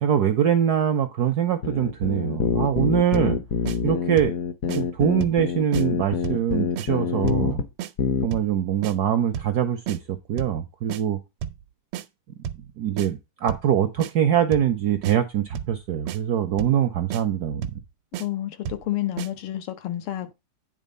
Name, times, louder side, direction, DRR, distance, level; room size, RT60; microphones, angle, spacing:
voice 1, 0.0-3.4 3.8-4.3 4.7-7.6 8.2-11.2 12.8-17.8, right 9 dB, 75° right, 0.9 m, -23 dB
sound 1, 1.6-7.7 8.0-8.3, left 6 dB, 65° left, 0.9 m, -26 dB
sound 2, 3.1-3.4 3.7-3.8 4.2-4.4 4.7-4.8 5.2-5.4 5.7-5.9 6.2-6.5 6.8-6.9 7.3-7.5 7.8-7.9 8.3-8.5 8.8-9.0 9.3-9.6 9.9-10.0 10.4-10.6 10.9-11.0 11.4-11.6 11.9-12.1 12.4-12.7 13.0-13.1 13.5-13.7 14.0-14.1 14.5-14.7 15.0-15.2 15.6-15.8 16.1-16.2 16.6-16.8 17.1-17.2 17.6-17.8 18.1-18.3 18.7-18.9 19.2-19.3, right 9 dB, 90° right, 1.6 m, -32 dB
voice 2, 18.2-20.3, left 13 dB, 90° left, 1.9 m, -29 dB
9.3 x 3.7 x 5.3 m
omnidirectional pair, 2.4 m